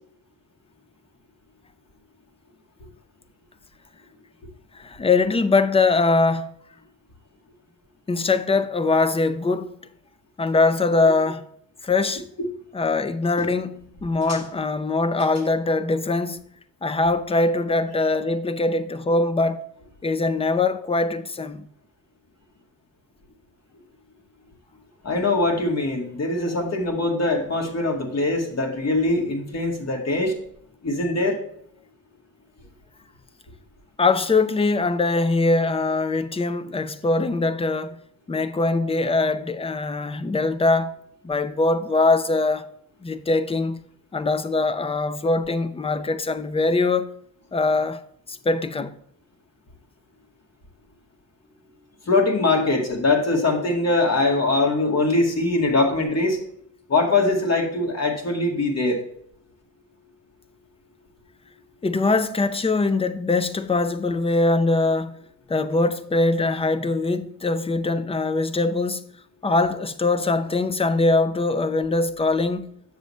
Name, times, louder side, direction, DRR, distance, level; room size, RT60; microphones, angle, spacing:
voice 1, 4.7-6.5 8.1-9.7 10.4-11.5 11.8-12.2 12.7-16.4 16.8-19.6 20.0-21.7 34.0-38.0 38.3-40.9 41.2-42.7 43.0-43.8 44.1-47.1 47.5-48.0 48.3-48.9 61.8-65.2 65.5-69.0 69.4-72.7, left 3 dB, 15° left, 0.5 m, -22 dB
voice 2, 25.0-30.3 30.8-31.4 52.1-56.4 56.9-59.0, left 2 dB, 40° left, 2.0 m, -22 dB
7.5 x 7.0 x 3.1 m
cardioid pair, 95°, 38 cm